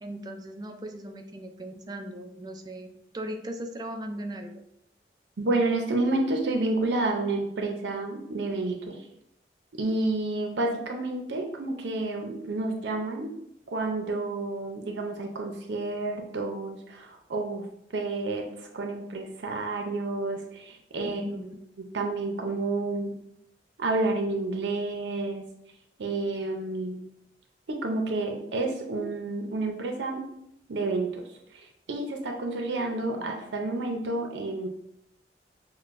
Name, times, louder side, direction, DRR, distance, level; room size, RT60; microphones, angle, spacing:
voice 1, 0.0-4.6 21.0-21.5 33.2-33.4, right 1 dB, 25° right, 5 dB, 0.4 m, -38 dB
voice 2, 5.4-9.1 9.8-13.3 13.7-17.7 17.9-21.2 21.9-23.2 23.8-25.5 26.0-27.0 27.7-30.2 30.7-31.2 31.5-34.7, right 2 dB, 80° right, 2 dB, 0.5 m, -30 dB
6.3 x 2.1 x 2.5 m, 0.78 s
head